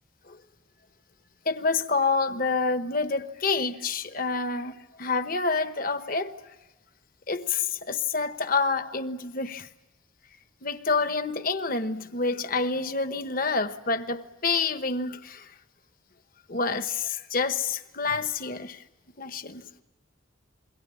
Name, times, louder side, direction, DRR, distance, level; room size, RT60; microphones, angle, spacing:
voice 1, 1.5-6.3 7.3-9.7 10.6-15.5 16.5-18.8 19.2-19.6, left 4 dB, 45° left, 1.1 m, -28 dB
27.5 x 22.5 x 8.4 m
head